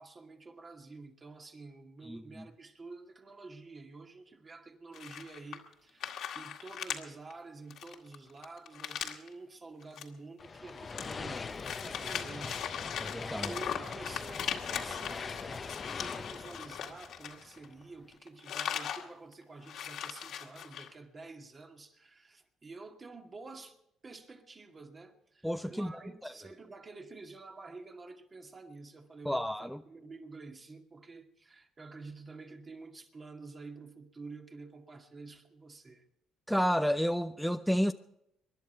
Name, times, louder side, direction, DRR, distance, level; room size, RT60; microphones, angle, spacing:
voice 1, 0.0-13.0 13.3-36.1, right 3 dB, 30° right, 2.2 m, -49 dB
voice 2, 2.0-2.5 13.0-13.5 25.4-25.9 26.2-26.3 29.3-29.8 36.5-37.9, equal, ahead, 0.6 m, -31 dB
sound 1, 4.9-5.7 6.0-7.0 7.3-7.4 7.7-9.3 9.8-10.0 10.4-17.8 18.1-19.0 19.3-19.4 19.6-20.9, left 9 dB, 70° left, 2.0 m, -39 dB
sound 2, 10.4-17.8, left 4 dB, 30° left, 0.9 m, -42 dB
24.5 x 11.0 x 4.5 m
supercardioid pair, 80°, 0 cm